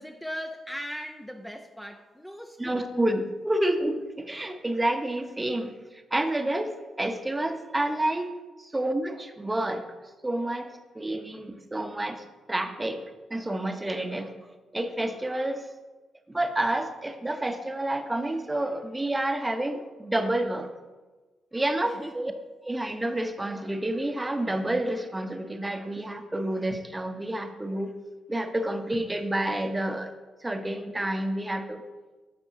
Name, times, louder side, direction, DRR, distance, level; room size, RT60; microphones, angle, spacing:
voice 1, 0.0-2.9 21.8-22.3, equal, 5° left, 3 dB, 0.6 m, -39 dB
voice 2, 2.6-5.7 6.1-9.8 10.2-13.0 13.3-14.3 14.7-15.6 16.3-20.7 21.5-22.3 22.6-27.9 28.3-30.1 30.4-31.8, right 1 dB, 20° right, 7 dB, 0.9 m, -29 dB
12.0 x 5.3 x 2.8 m, 1.2 s
hypercardioid pair, 40°, 0 cm